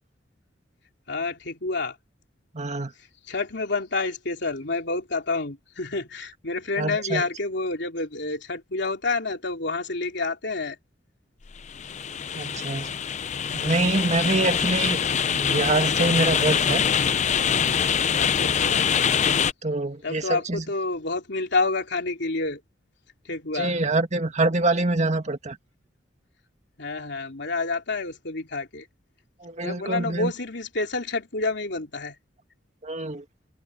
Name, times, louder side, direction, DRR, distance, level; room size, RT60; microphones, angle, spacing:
voice 1, 1.1-2.0 3.0-10.8 14.2-14.6 18.2-18.9 20.0-22.6 23.2-23.7 26.8-28.9 29.6-32.2, left 3 dB, 65° left, 3.3 m, -29 dB
voice 2, 2.5-2.9 6.8-7.2 12.4-12.9 13.5-15.0 15.3-16.8 19.6-20.6 23.5-25.6 29.4-30.3 32.8-33.2, right 2 dB, 40° right, 2.0 m, -25 dB
sound 1, 11.5-19.5, left 7 dB, 40° left, 0.5 m, -24 dB
head